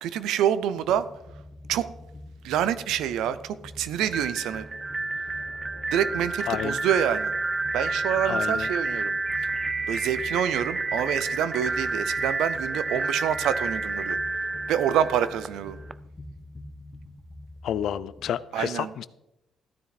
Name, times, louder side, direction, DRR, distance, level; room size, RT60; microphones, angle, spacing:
voice 1, 0.0-1.1 1.7-1.9 2.4-4.6 5.9-7.3 7.7-9.2 9.9-14.2 14.7-15.8 18.5-18.9, right 10 dB, 90° right, 15 dB, 0.6 m, -27 dB
sound 1, 0.7-18.3, left 1 dB, 30° left, 1.7 m, -46 dB
sound 2, 4.1-15.9, right 3 dB, 25° right, 0.4 m, -30 dB
voice 2, 6.5-6.8 8.2-8.7 17.6-19.1, left 9 dB, 75° left, 17 dB, 0.5 m, -30 dB
14.0 x 9.3 x 4.1 m, 0.90 s
cardioid pair, 90°, 0 cm